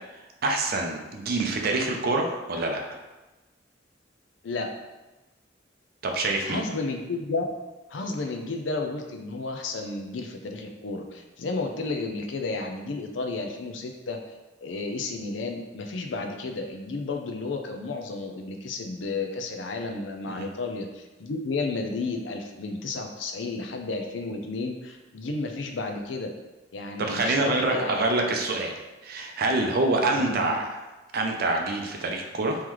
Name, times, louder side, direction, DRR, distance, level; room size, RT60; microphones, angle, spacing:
voice 1, 0.4-2.8 6.0-6.6 20.3-20.5 27.0-28.7 29.0-30.8 31.1-32.6, right 2 dB, 55° right, 2 dB, 0.5 m, -26 dB
voice 2, 6.4-7.4 7.9-14.2 14.6-26.3 26.7-28.0 30.1-30.6, left 3 dB, 75° left, 4 dB, 0.5 m, -32 dB
3.7 x 3.1 x 3.0 m, 1.1 s
head